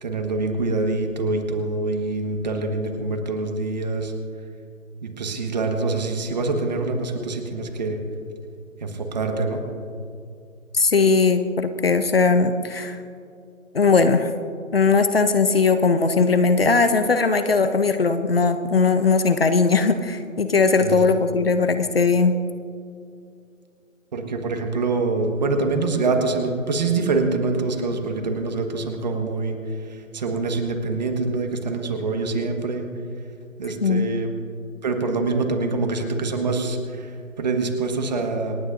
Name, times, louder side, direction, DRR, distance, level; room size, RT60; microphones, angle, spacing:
voice 1, 0.0-4.1 5.0-8.0 8.8-9.6 20.8-21.0 24.1-32.9 33.6-34.3 34.8-38.6, right 3 dB, 30° right, 4 dB, 1.5 m, -25 dB
voice 2, 10.7-13.0 13.7-14.3 14.7-22.3 33.8-34.1, left 4 dB, 45° left, 9 dB, 0.7 m, -19 dB
27.5 x 9.7 x 2.6 m, 2.4 s
figure-of-eight pair, 155°, 41 cm